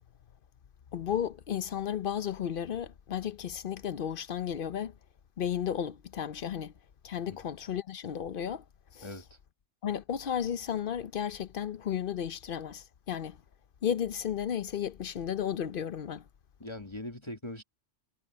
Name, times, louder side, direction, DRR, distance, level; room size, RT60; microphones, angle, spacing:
voice 1, 0.9-4.9 5.4-6.7 7.0-8.6 8.9-9.1 9.8-13.4 13.8-16.2, left 9 dB, 55° left, 0.7 m, -33 dB
voice 2, 9.0-9.4 16.6-17.6, left 1 dB, 25° left, 1.6 m, -41 dB
omnidirectional pair, 1.3 m